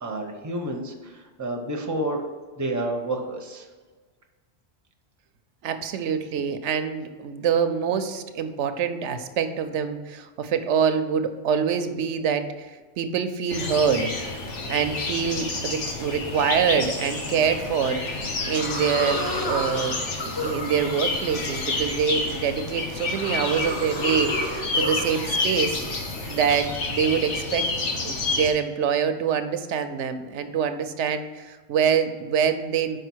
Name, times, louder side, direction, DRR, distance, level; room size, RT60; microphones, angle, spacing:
voice 1, 0.0-0.9 1.4-2.3 2.6-3.6, right 1 dB, 20° right, 3 dB, 0.7 m, -29 dB
voice 2, 5.6-12.7 13.0-14.1 14.7-27.7 28.0-33.0, right 7 dB, 85° right, 9 dB, 0.9 m, -25 dB
sound 1, 13.5-28.5, left 3 dB, 85° left, 1.4 m, -29 dB
sound 2, 17.8-18.2 18.5-27.2, left 1 dB, 25° left, 1.0 m, -33 dB
5.6 x 5.0 x 6.1 m, 1.4 s
omnidirectional pair, 1.2 m